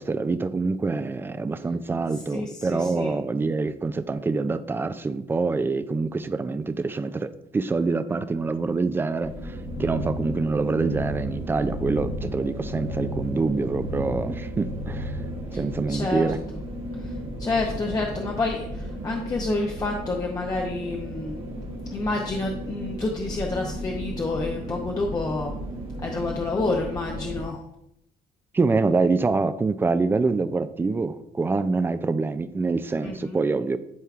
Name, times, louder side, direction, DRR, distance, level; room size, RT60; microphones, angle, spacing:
voice 1, 0.0-15.2 15.5-16.4 28.5-33.8, right 3 dB, 15° right, 12 dB, 0.3 m, -25 dB
voice 2, 2.3-3.1 15.9-16.3 17.4-21.4 21.9-25.5 26.0-27.6 33.0-33.4, left 3 dB, 20° left, 0 dB, 0.6 m, -28 dB
sound 1, 9.2-27.5, equal, 35° right, 1.2 m, -35 dB
sound 2, 9.5-15.8, equal, 55° left, 1.0 m, -35 dB
11.5 x 4.5 x 2.4 m, 0.79 s
cardioid pair, 155°, 17 cm